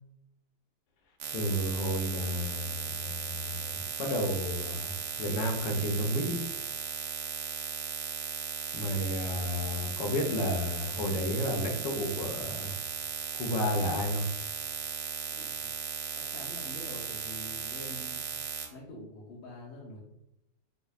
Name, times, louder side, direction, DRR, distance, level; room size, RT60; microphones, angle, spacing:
sound 1, 1.2-18.7, right 6 dB, 70° right, 1.0 m, -37 dB
voice 1, 1.3-6.4 8.7-12.7 13.4-14.2, left 1 dB, 70° left, 2 dB, 1.2 m, -32 dB
voice 2, 15.3-15.8 16.1-18.3 18.7-20.0, left 1 dB, 85° left, -5 dB, 1.5 m, -46 dB
5.2 x 2.0 x 2.3 m, 0.84 s
omnidirectional pair, 2.1 m